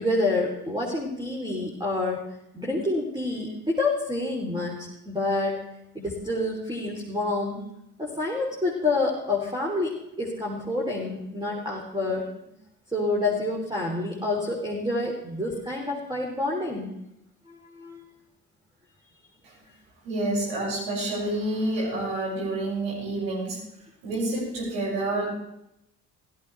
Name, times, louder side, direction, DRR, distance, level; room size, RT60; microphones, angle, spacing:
voice 1, 0.0-5.6 5.9-7.6 8.0-12.5 12.9-16.9 17.5-18.0, left 2 dB, 10° right, -2 dB, 3.4 m, -28 dB
voice 2, 20.0-23.6 24.0-25.3, right 2 dB, 65° right, -5 dB, 6.2 m, -28 dB
16.5 x 14.0 x 3.4 m, 0.82 s
figure-of-eight pair, 40°, 46 cm